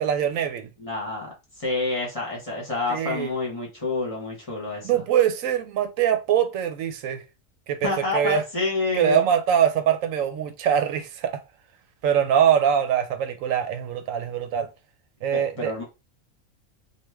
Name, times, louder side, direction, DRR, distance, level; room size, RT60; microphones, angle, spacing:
voice 1, 0.0-0.7 2.9-3.3 4.8-7.2 7.7-8.4 8.9-11.4 12.0-14.7 15.2-15.7, right 9 dB, 85° right, 1.0 m, -23 dB
voice 2, 0.8-5.0 7.8-9.2 15.3-15.8, left 3 dB, 25° left, 1.3 m, -28 dB
3.1 x 2.4 x 3.4 m
omnidirectional pair, 1.4 m